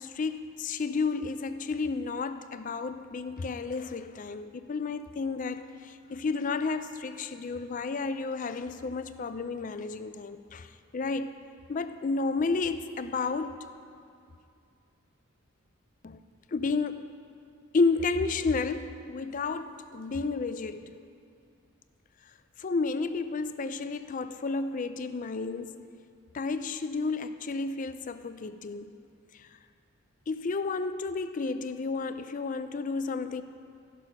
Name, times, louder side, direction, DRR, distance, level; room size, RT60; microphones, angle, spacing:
voice 1, 0.0-10.7 10.9-11.3 11.7-13.6 16.0-16.2 16.5-17.0 17.7-20.9 22.6-25.8 26.3-28.9 30.3-33.4, left 4 dB, 40° left, 11 dB, 0.4 m, -31 dB
14.0 x 6.1 x 5.7 m, 2.5 s
head